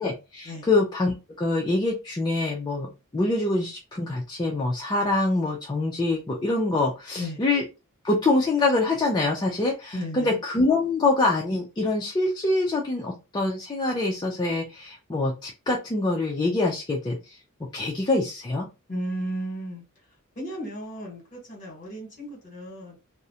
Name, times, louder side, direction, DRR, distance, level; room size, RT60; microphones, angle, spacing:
voice 1, 0.0-7.6 8.0-17.4 17.7-18.7, left 2 dB, 20° left, 0.4 m, -25 dB
voice 2, 9.9-10.4 18.9-19.8 20.4-23.0, equal, 35° left, 1.2 m, -34 dB
2.4 x 2.0 x 2.7 m
head